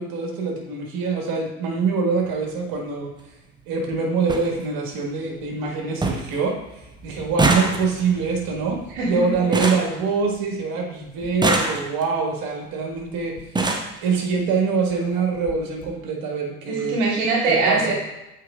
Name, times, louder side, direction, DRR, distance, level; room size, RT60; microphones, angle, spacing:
voice 1, 0.0-3.1 3.7-6.5 7.0-8.8 9.0-13.4 14.0-17.0 17.5-17.9, right 5 dB, 50° right, 0 dB, 1.9 m, -24 dB
sound 1, 2.1-2.4 3.6-3.7 3.9-4.0 4.3-4.5 4.9-5.4 5.7-5.8 6.0-6.4 6.7-10.6 11.2-12.2 13.0-13.1 13.4-14.0 14.9-15.0 15.3-15.5 15.8-15.9, right 2 dB, 10° right, 0.7 m, -25 dB
voice 2, 16.7-17.9, right 3 dB, 70° right, -2 dB, 1.5 m, -22 dB
8.3 x 4.8 x 2.5 m, 0.95 s
hypercardioid pair, 70°, 45 cm